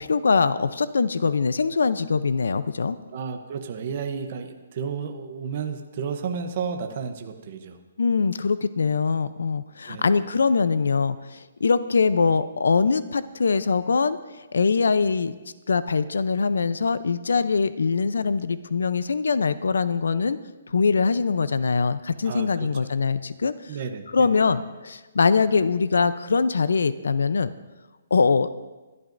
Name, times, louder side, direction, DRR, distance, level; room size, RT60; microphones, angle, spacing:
voice 1, 0.0-3.0 8.0-15.4 15.7-20.4 20.7-23.8 24.1-27.5 28.1-28.5, left 5 dB, 85° left, 14 dB, 0.6 m, -23 dB
voice 2, 3.1-7.8 9.8-10.3 22.2-22.7 23.7-24.3, right 6 dB, 30° right, 5 dB, 0.8 m, -32 dB
22.0 x 12.0 x 2.6 m, 1.2 s
hypercardioid pair, 180°, 0 cm